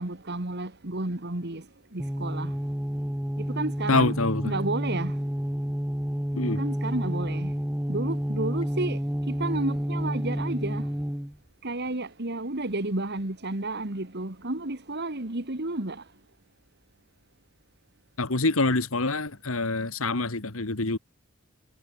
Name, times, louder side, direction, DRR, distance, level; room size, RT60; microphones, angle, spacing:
voice 1, 0.0-1.6 1.9-2.5 3.4-4.1 4.4-5.2 6.4-7.5 7.9-9.0 9.3-10.9 11.6-16.0, right 2 dB, 50° right, 2.2 m, -31 dB
sound 1, 2.0-11.4, equal, 5° right, 0.5 m, -30 dB
voice 2, 3.9-4.5 6.4-6.6 18.2-21.0, left 3 dB, 65° left, 1.9 m, -26 dB
head